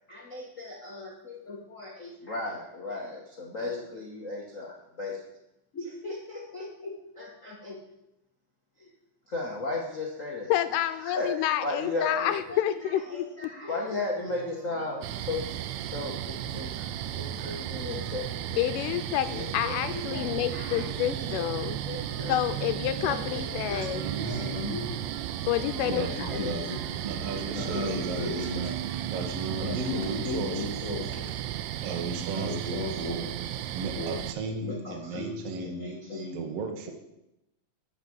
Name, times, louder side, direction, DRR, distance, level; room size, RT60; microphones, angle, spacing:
voice 1, 0.1-5.2 5.7-7.8 8.8-8.9 9.3-10.5 11.0-11.3 11.6-12.7 13.1-16.8 17.1-18.6 19.3-22.4 23.0-25.0 25.9-26.9 27.5-28.8 29.6-31.4 32.3-33.2 33.9-34.2 34.6-36.4, left 2 dB, 70° left, -2 dB, 0.7 m, -36 dB
voice 2, 10.5-13.5 18.6-21.8 22.3-24.0 25.5-26.4, left 12 dB, 85° left, 11 dB, 2.3 m, -29 dB
sound 1, 14.1-31.2, right 3 dB, 30° right, 2.3 m, -51 dB
sound 2, 15.0-34.3, right 11 dB, 85° right, 1.5 m, -34 dB
voice 3, 23.7-24.5 25.9-26.3 27.0-28.2 29.1-30.8 31.8-33.2 33.7-35.8 36.3-36.9, right 4 dB, 60° right, 3 dB, 1.8 m, -35 dB
12.0 x 5.0 x 7.8 m, 0.86 s
omnidirectional pair, 3.8 m